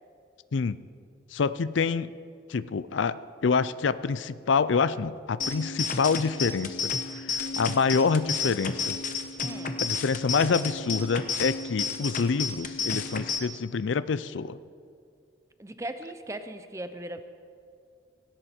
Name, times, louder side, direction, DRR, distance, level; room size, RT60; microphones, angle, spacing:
voice 1, 1.3-2.1 2.5-6.8 7.2-9.0 9.8-14.6, left 5 dB, 85° left, 16 dB, 0.5 m, -27 dB
sound 1, 5.4-13.4, left 5 dB, 45° left, 1.1 m, -32 dB
voice 2, 9.4-9.8 15.6-17.3, right 1 dB, 15° right, 9 dB, 0.7 m, -38 dB
17.5 x 17.0 x 4.4 m, 2.3 s
head